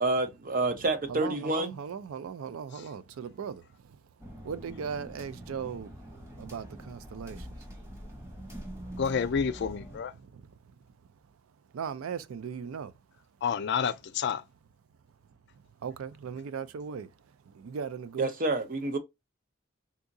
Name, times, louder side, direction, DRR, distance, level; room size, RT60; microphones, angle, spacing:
voice 1, 0.0-1.8 18.2-19.0, right 2 dB, 45° right, 0.7 m, -28 dB
voice 2, 1.1-4.0 4.4-7.5 10.1-10.6 11.7-12.9 15.8-17.1 17.5-18.3, right 6 dB, 90° right, 0.4 m, -38 dB
sound 1, 4.2-10.0, equal, 15° right, 1.2 m, -44 dB
voice 3, 9.0-10.1 13.4-14.4, left 6 dB, 55° left, 0.4 m, -29 dB
3.6 x 2.8 x 2.5 m
head